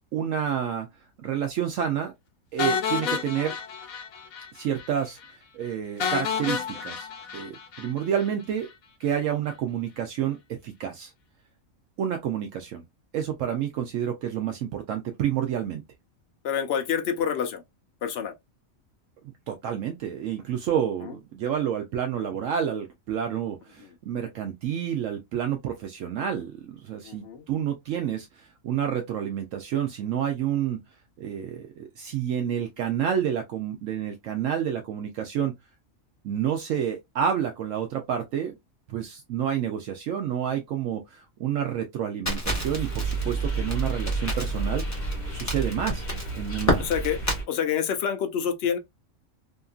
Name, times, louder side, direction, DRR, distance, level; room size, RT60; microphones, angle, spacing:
voice 1, 0.1-0.9 1.2-2.1 2.5-3.5 4.5-7.1 7.3-8.7 9.0-11.1 12.0-12.8 13.1-15.8 19.5-30.8 31.2-35.5 36.2-38.6 38.9-44.8 45.3-46.1 46.3-46.9, right 9 dB, 70° right, 0.9 m, -29 dB
sound 1, 2.6-4.5 4.8-4.9 5.2-5.3 6.0-8.3, left 6 dB, 90° left, 1.1 m, -30 dB
voice 2, 16.4-17.6 18.0-18.3 21.0-21.1 23.8-23.9 27.0-27.4 46.8-47.2 47.5-48.8, left 8 dB, 60° left, 0.7 m, -27 dB
Crackle, 42.3-47.4, left 1 dB, 15° left, 1.0 m, -30 dB
sound 2, 42.4-47.4, right 3 dB, 35° left, 1.2 m, -31 dB
2.8 x 2.6 x 2.3 m
omnidirectional pair, 1.4 m